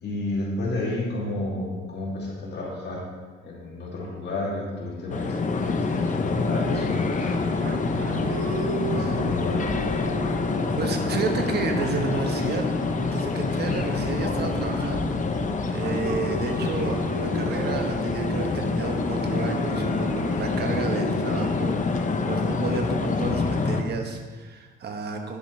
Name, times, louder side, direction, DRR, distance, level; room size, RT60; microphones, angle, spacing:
voice 1, 0.0-3.0 3.4-8.2 8.9-9.6, left 2 dB, 60° left, -3 dB, 2.6 m, -31 dB
sound 1, 5.1-23.8, left 4 dB, 40° left, 0.8 m, -26 dB
sound 2, 7.2-15.3 15.8-23.9, right 6 dB, 80° right, 0.8 m, -37 dB
voice 2, 10.8-12.8 13.1-15.2 15.7-21.8 22.3-25.4, right 4 dB, 55° right, 3 dB, 1.2 m, -31 dB
10.5 x 7.5 x 3.2 m, 1.4 s
cardioid pair, 90°, 20 cm